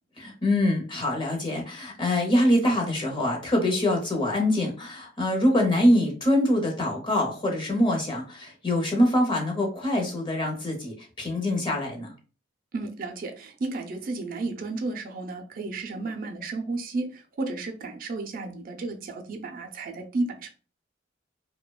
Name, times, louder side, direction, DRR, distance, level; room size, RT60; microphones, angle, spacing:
voice 1, 0.2-12.1, left 1 dB, 25° left, 0 dB, 0.7 m, -24 dB
voice 2, 12.7-20.5, right 3 dB, 50° right, 4 dB, 0.4 m, -33 dB
2.6 x 2.1 x 2.2 m, 0.37 s
head